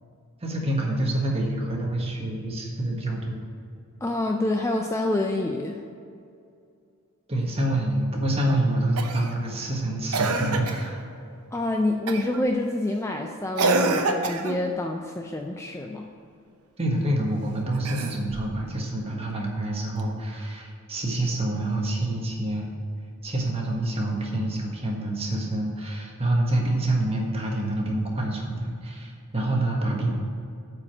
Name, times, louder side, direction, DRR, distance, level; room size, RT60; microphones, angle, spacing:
voice 1, 0.4-3.4 7.3-11.1 16.8-22.7 23.2-30.1, right 1 dB, 25° right, -1 dB, 1.5 m, -27 dB
voice 2, 4.0-5.8 11.5-16.1, left 1 dB, 10° left, 2 dB, 0.4 m, -27 dB
Cough, 9.0-9.3 10.1-10.9 12.1-12.4 13.6-14.6 17.7-18.5 20.0-20.1, right 3 dB, 85° right, 0.8 m, -26 dB
8.3 x 5.0 x 7.5 m, 2.4 s
head